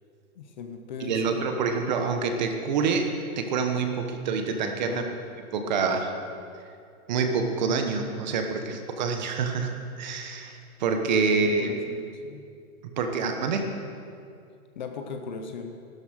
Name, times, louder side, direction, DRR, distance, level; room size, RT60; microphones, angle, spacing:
voice 1, 0.4-1.4 4.9-5.2 11.3-12.4 14.8-15.8, left 5 dB, 30° left, 6 dB, 0.9 m, -38 dB
voice 2, 1.0-5.0 5.5-6.1 7.1-9.7 10.0-11.7 13.0-13.7, right 5 dB, 30° right, 5 dB, 1.1 m, -26 dB
15.0 x 12.5 x 6.4 m, 2.4 s
hypercardioid pair, 170°, 43 cm